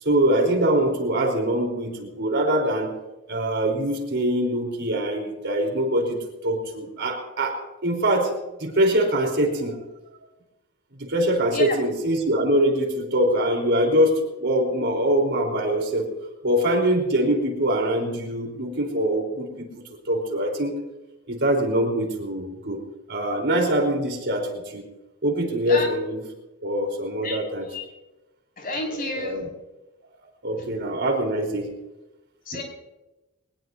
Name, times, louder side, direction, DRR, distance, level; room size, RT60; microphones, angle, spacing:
voice 1, 0.0-2.9 3.3-6.2 6.4-9.8 11.0-16.1 16.4-19.7 20.1-20.7 21.3-22.8 23.1-24.8 25.2-26.2 26.6-27.7 28.9-29.5 30.4-31.7 32.5-32.6, right 1 dB, 55° right, 2 dB, 4.1 m, -23 dB
voice 2, 27.2-27.9 28.6-29.4 32.5-32.6, left 2 dB, 40° left, 1 dB, 5.7 m, -30 dB
22.0 x 20.5 x 2.8 m, 1.0 s
head